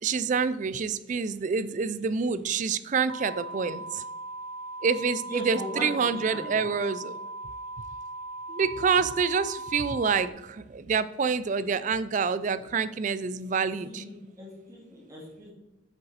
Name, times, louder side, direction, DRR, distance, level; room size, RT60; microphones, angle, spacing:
voice 1, 0.0-4.0 4.8-7.2 8.5-14.0, right 5 dB, 40° right, 15 dB, 0.3 m, -27 dB
sound 1, 3.1-10.3, right 2 dB, 85° right, 0.6 m, -39 dB
voice 2, 5.3-6.7 12.5-12.6 13.8-15.5, equal, 15° right, -4 dB, 2.0 m, -39 dB
8.1 x 6.6 x 4.1 m, 1.1 s
head